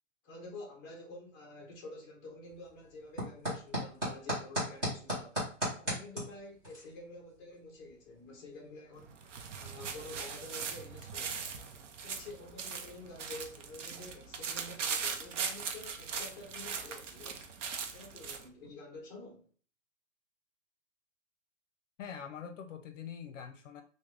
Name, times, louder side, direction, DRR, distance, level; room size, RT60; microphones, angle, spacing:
voice 1, 0.2-5.4 5.8-9.1 9.6-11.5 12.0-17.5 17.9-19.5, left 2 dB, 20° left, 0.8 m, -49 dB
sound 1, 2.4-18.7, equal, 10° right, 0.5 m, -43 dB
sound 2, 9.0-18.5, right 6 dB, 70° right, 0.7 m, -40 dB
voice 2, 22.0-23.8, left 7 dB, 75° left, 0.6 m, -44 dB
3.5 x 2.1 x 3.2 m
hypercardioid pair, 175°, 38 cm